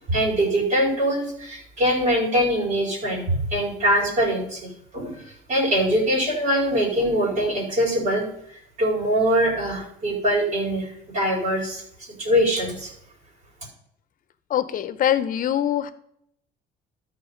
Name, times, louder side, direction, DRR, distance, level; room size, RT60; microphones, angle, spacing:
voice 1, 0.1-11.8 12.2-12.9, equal, 50° right, -3 dB, 4.1 m, -23 dB
voice 2, 14.5-15.9, left 11 dB, 55° left, 14 dB, 0.8 m, -23 dB
13.0 x 4.5 x 5.1 m, 0.72 s
cardioid pair, 110°, 17 cm